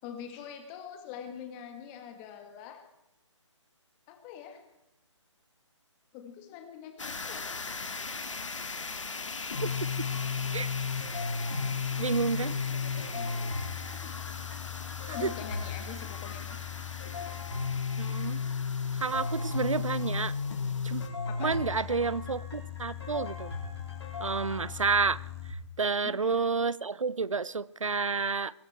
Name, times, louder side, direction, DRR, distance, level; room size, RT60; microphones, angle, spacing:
voice 1, 0.0-2.8 4.1-4.6 6.1-7.5 12.4-12.5 12.8-13.6 14.0-14.1 15.1-16.6 21.3-22.1 26.0-26.5, left 8 dB, 20° left, 2.0 m, -44 dB
sound 1, 7.0-21.1, left 4 dB, 75° left, 2.0 m, -41 dB
sound 2, 9.5-25.5, left 5 dB, 55° left, 4.3 m, -35 dB
voice 2, 12.0-12.5 15.2-15.3 18.0-18.4 18.9-20.3 20.8-21.0 21.4-23.5 24.2-25.2 25.8-28.5, right 4 dB, 85° right, 0.7 m, -30 dB
23.0 x 12.0 x 4.5 m
figure-of-eight pair, 150°, 16 cm